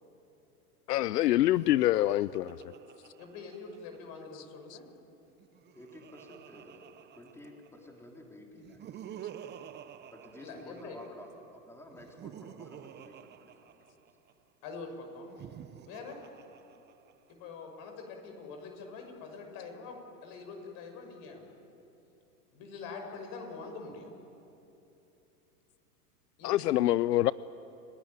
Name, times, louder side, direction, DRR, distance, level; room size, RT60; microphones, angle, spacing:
voice 1, 0.9-2.6 26.4-27.3, left 14 dB, 85° left, 19 dB, 0.6 m, -25 dB
Laughter, 1.4-4.2 5.3-7.9 8.5-11.3 11.9-14.3 15.2-17.3, right 9 dB, 20° right, 0.9 m, -50 dB
voice 2, 3.2-4.8 10.4-11.0 14.6-15.3 15.9-16.2 17.3-21.5 22.5-24.1 26.4-26.8, left 4 dB, 45° left, 4 dB, 6.3 m, -44 dB
voice 3, 5.7-6.8 7.1-9.3 10.1-13.9, left 1 dB, 5° left, 0 dB, 3.5 m, -51 dB
30.0 x 17.5 x 9.3 m, 2.9 s
hypercardioid pair, 120°, 47 cm